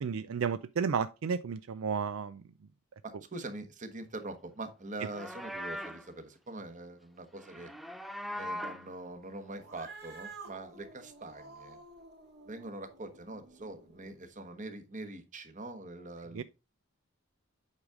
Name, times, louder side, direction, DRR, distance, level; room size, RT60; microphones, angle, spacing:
voice 1, 0.0-2.4 16.3-16.4, right 6 dB, 75° right, 0.4 m, -32 dB
voice 2, 3.0-7.7 8.3-11.8 12.4-16.4, right 2 dB, 40° right, 1.2 m, -43 dB
Livestock farm animals working animals, 4.9-6.1 7.4-8.9, equal, ahead, 0.4 m, -40 dB
Cat, 9.5-14.2, right 4 dB, 55° right, 1.8 m, -51 dB
8.3 x 4.9 x 3.6 m
head